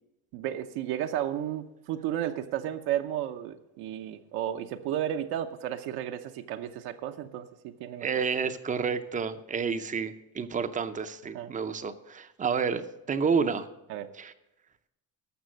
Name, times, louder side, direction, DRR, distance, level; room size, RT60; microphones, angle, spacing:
voice 1, 0.3-8.1 11.3-11.5 13.9-14.1, right 11 dB, 65° right, 5 dB, 0.8 m, -33 dB
voice 2, 8.0-13.7 14.2-14.3, right 6 dB, 20° right, 10 dB, 0.6 m, -30 dB
12.5 x 6.9 x 6.3 m, 0.94 s
cardioid pair, 135°, 40 cm